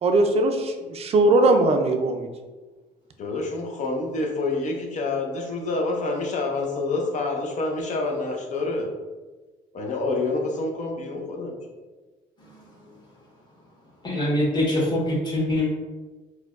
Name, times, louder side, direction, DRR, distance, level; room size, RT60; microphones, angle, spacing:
voice 1, 0.0-2.3, right 2 dB, 35° right, 5 dB, 0.4 m, -20 dB
voice 2, 3.2-8.9 9.7-11.6, left 3 dB, 45° left, 1 dB, 0.6 m, -27 dB
voice 3, 14.0-15.7, left 1 dB, 25° left, -5 dB, 1.3 m, -23 dB
4.4 x 2.2 x 2.4 m, 1.3 s
cardioid pair, 110°, 17 cm